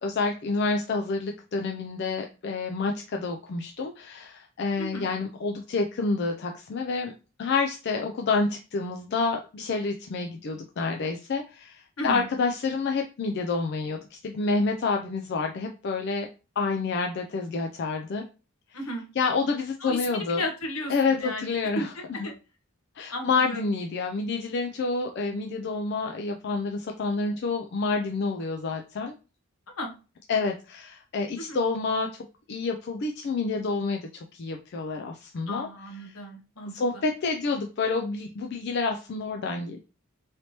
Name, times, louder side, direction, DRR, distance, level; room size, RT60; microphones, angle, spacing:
voice 1, 0.0-7.1 7.4-16.3 16.6-18.2 19.2-20.4 20.9-22.3 23.0-29.1 30.3-32.1 32.5-35.7 36.0-36.2 36.7-39.8, left 4 dB, 50° left, 3 dB, 0.3 m, -28 dB
voice 2, 18.7-19.1 19.8-21.8 22.2-22.3 23.1-23.6 29.8-29.9 31.5-31.6 35.5-36.7, left 1 dB, 75° left, 3 dB, 0.9 m, -34 dB
3.2 x 2.8 x 2.8 m, 0.32 s
head